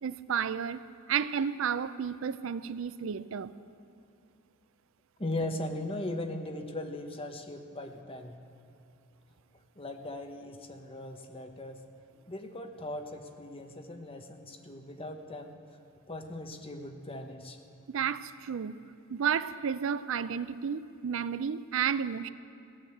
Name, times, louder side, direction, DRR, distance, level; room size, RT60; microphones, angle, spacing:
voice 1, 0.0-0.8 1.1-3.5 17.9-18.8 19.1-22.3, right 7 dB, 65° right, 15 dB, 0.4 m, -32 dB
voice 2, 5.2-8.4 9.8-11.8 12.3-15.6 16.1-17.6, left 1 dB, 25° left, 5 dB, 1.1 m, -39 dB
17.0 x 10.0 x 7.8 m, 2.6 s
head